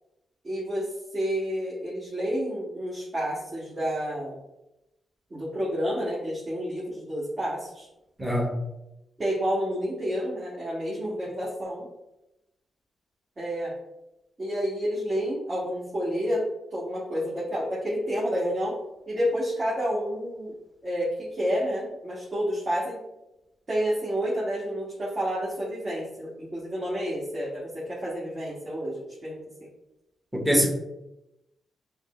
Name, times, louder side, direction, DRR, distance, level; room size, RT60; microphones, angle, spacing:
voice 1, 0.4-0.9 1.1-4.3 5.3-7.9 9.2-11.9 13.4-13.7 14.4-16.4 16.7-18.7 19.1-20.5 20.8-23.0 23.7-29.4, equal, 40° right, -8 dB, 1.4 m, -29 dB
voice 2, 8.2-8.6 30.3-30.7, equal, 10° right, -1 dB, 1.1 m, -23 dB
4.9 x 2.0 x 3.0 m, 0.92 s
cardioid pair, 65°, 0 cm